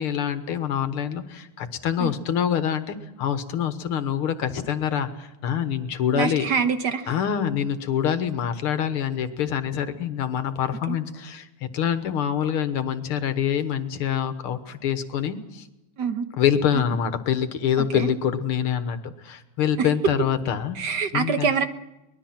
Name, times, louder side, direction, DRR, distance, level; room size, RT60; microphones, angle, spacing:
voice 1, 0.0-6.5 7.1-11.5 11.7-15.7 16.4-20.8 21.1-21.5, left 8 dB, 85° left, 10 dB, 2.2 m, -25 dB
voice 2, 6.1-7.1 10.9-11.0 16.0-16.2 16.7-16.8 17.8-18.1 19.8-19.9 20.7-21.6, right 6 dB, 55° right, 8 dB, 1.6 m, -25 dB
23.5 x 20.0 x 6.0 m, 0.96 s
omnidirectional pair, 2.4 m